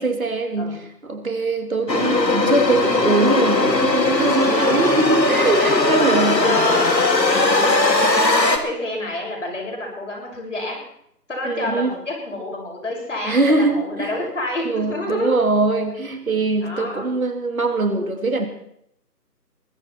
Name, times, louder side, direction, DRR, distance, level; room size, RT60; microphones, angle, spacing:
voice 1, 0.0-6.6 7.6-7.8 11.4-11.9 13.3-14.2 14.6-18.5, right 2 dB, 55° right, 6 dB, 2.7 m, -22 dB
sound 1, 1.9-8.6, left 2 dB, 85° left, 2.7 m, -18 dB
voice 2, 5.8-6.9 7.2-10.8 11.3-15.4 16.6-17.1, left 1 dB, 45° left, -1 dB, 6.9 m, -28 dB
22.0 x 14.0 x 4.4 m, 0.73 s
figure-of-eight pair, 170°, 49 cm